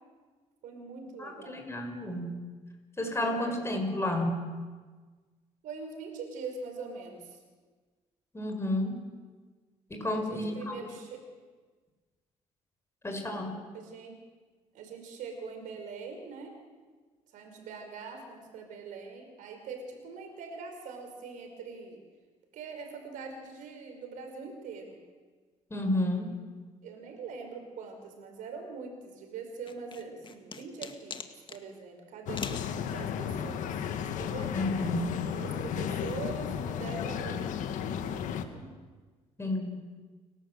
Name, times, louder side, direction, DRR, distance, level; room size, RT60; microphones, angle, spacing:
voice 1, 0.6-1.7 3.3-3.6 5.6-7.4 10.1-11.2 13.7-14.2 14.7-16.6 17.3-22.0 22.5-25.0 26.8-31.2 31.5-33.8 34.1-35.0 35.3-38.7, right 4 dB, 80° right, 4 dB, 5.3 m, -43 dB
voice 2, 1.2-2.3 3.0-4.3 8.3-9.0 9.9-10.8 13.0-13.5 25.7-26.3 34.5-35.0 39.4-39.8, left 1 dB, 20° left, 3 dB, 5.8 m, -31 dB
sound 1, 29.7-31.6 32.4-32.7, left 5 dB, 40° left, 2.0 m, -41 dB
sound 2, 32.3-38.4, left 8 dB, 80° left, 1.6 m, -34 dB
29.5 x 12.0 x 8.0 m, 1.4 s
cardioid pair, 80°, 13 cm